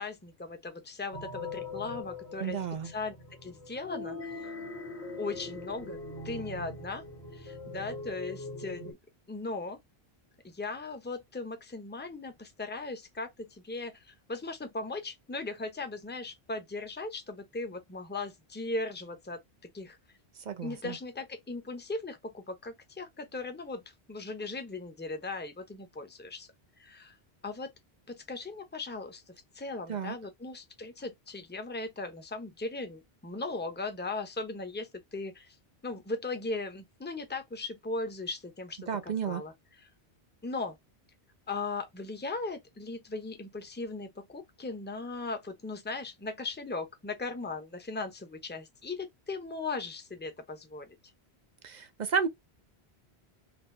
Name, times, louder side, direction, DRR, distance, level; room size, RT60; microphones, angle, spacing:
voice 1, 0.0-2.6 2.8-3.1 3.4-4.5 5.2-6.0 6.2-7.0 7.3-9.0 9.3-9.8 10.4-19.4 19.7-20.0 20.6-23.8 24.1-26.5 26.8-27.1 27.4-27.7 28.1-29.2 29.5-35.6 35.8-38.8 39.0-39.5 40.4-40.8 41.5-51.0, left 3 dB, 10° left, 0.8 m, -38 dB
sound 1, 1.1-8.9, left 3 dB, 85° left, 1.8 m, -42 dB
voice 2, 2.4-2.9 20.5-21.0 29.9-30.1 38.9-39.4 51.6-52.3, right 6 dB, 50° right, 0.7 m, -32 dB
4.3 x 2.8 x 2.7 m
omnidirectional pair, 1.1 m